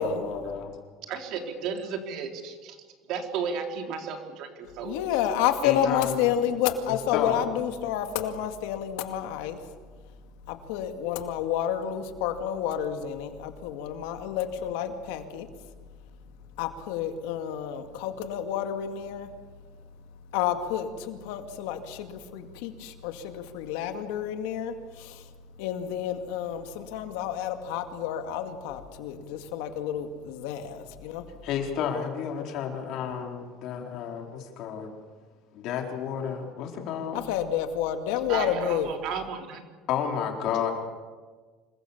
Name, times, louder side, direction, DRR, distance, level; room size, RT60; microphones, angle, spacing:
voice 1, 0.0-0.7 5.6-6.2 6.9-7.6 31.4-34.9 35.5-37.2 39.9-40.7, left 8 dB, 60° left, 4.2 m, -31 dB
voice 2, 1.1-2.8 3.1-5.0 38.3-39.6, right 6 dB, 60° right, 3.6 m, -34 dB
voice 3, 4.8-9.6 10.5-15.5 16.6-19.3 20.3-25.2 25.6-31.2 37.3-38.9, left 9 dB, 85° left, 2.2 m, -30 dB
26.5 x 22.0 x 7.3 m
cardioid pair, 130°, 0 cm